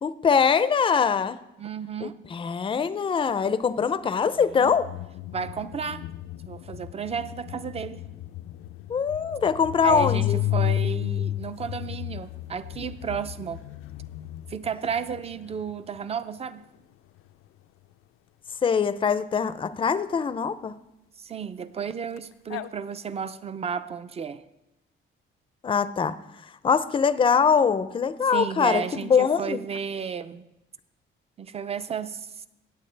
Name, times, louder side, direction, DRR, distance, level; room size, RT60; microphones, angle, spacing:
voice 1, 0.0-1.4 2.0-4.9 8.9-10.4 18.6-20.7 25.6-26.1 26.6-29.6, left 6 dB, 25° left, 14 dB, 0.4 m, -23 dB
voice 2, 1.6-2.2 4.3-4.8 5.3-6.1 6.5-8.0 9.8-13.6 14.5-16.6 21.2-24.4 28.3-30.4 31.4-32.4, right 7 dB, 30° right, 13 dB, 0.5 m, -33 dB
sound 1, 4.4-16.0 22.2-22.3 22.5-22.7, left 13 dB, 90° left, 0.4 m, -33 dB
17.0 x 8.4 x 3.3 m, 0.93 s
cardioid pair, 140°, 21 cm